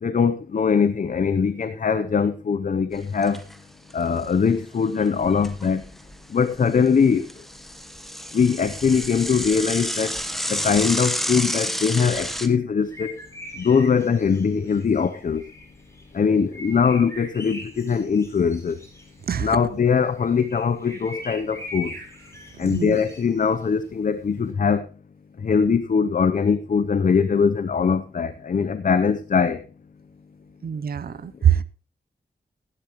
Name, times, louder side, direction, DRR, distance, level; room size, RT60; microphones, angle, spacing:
voice 1, 0.0-3.4 3.9-5.8 6.3-7.3 8.3-10.2 10.5-13.2 13.6-15.4 16.1-18.8 19.4-21.9 22.6-24.9 25.4-29.6, left 6 dB, 55° left, 0.7 m, -21 dB
Bicycle / Mechanisms, 2.9-3.6 3.9-4.0 4.2-4.3 5.0-6.2 6.5-12.5, equal, ahead, 1.1 m, -30 dB
sound 1, 12.8-24.5, equal, 15° left, 4.3 m, -42 dB
voice 2, 22.6-23.0 30.6-31.6, right 9 dB, 65° right, 0.6 m, -23 dB
16.0 x 11.0 x 3.0 m
wide cardioid pair, 125°, 17 cm